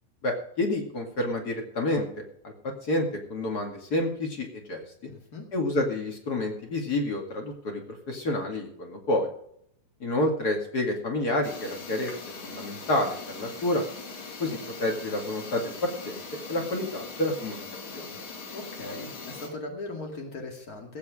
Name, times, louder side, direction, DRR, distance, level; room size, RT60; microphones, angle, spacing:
voice 1, 0.2-4.8 5.5-9.3 10.0-12.1 12.4-13.8 14.4-16.2 16.5-17.6 17.9-18.2, left 1 dB, 40° left, 2 dB, 1.5 m, -29 dB
voice 2, 5.1-5.4 18.5-21.0, left 2 dB, 90° left, 1 dB, 0.8 m, -39 dB
sound 1, 11.4-19.5, left 4 dB, 65° left, 4.6 m, -41 dB
16.5 x 8.7 x 5.0 m, 0.67 s
omnidirectional pair, 5.4 m